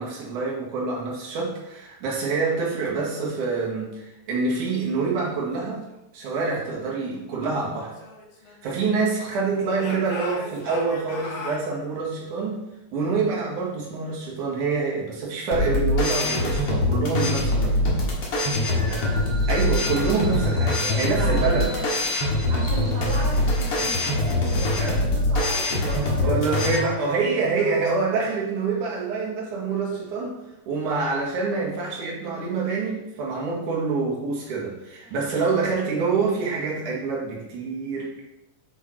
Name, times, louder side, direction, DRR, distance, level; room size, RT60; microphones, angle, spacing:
voice 1, 0.0-5.8 6.1-8.0 8.5-12.6 12.9-17.8 19.5-21.7 24.8-25.0 26.2-38.1, right 4 dB, 60° right, -4 dB, 3.2 m, -26 dB
Speech / Shout, 7.8-9.3 9.8-11.7, left 2 dB, 60° left, 1.3 m, -38 dB
sound 1, 15.5-26.8, left 1 dB, 45° left, 2.4 m, -23 dB
sound 2, 16.0-24.5, right 1 dB, ahead, 0.8 m, -41 dB
voice 2, 18.5-19.1 21.0-21.8 22.5-27.1 27.6-28.3 35.0-35.3, right 2 dB, 85° right, -4 dB, 4.0 m, -36 dB
8.8 x 6.3 x 4.6 m, 0.95 s
omnidirectional pair, 4.3 m